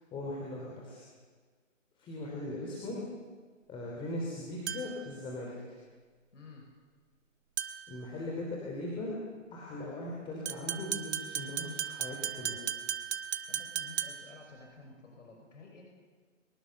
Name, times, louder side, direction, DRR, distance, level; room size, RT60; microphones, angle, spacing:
voice 1, 0.1-1.0 2.0-3.0 3.7-5.5 7.9-9.2 9.5-12.6, left 1 dB, 15° left, -3 dB, 3.3 m, -39 dB
sound 1, 4.7-5.1 7.6-8.0 10.5-14.4, right 9 dB, 55° right, 2.0 m, -36 dB
voice 2, 6.3-6.7 13.5-15.9, left 4 dB, 70° left, 1 dB, 5.5 m, -52 dB
24.0 x 20.5 x 6.8 m, 1.5 s
hypercardioid pair, 150°, 39 cm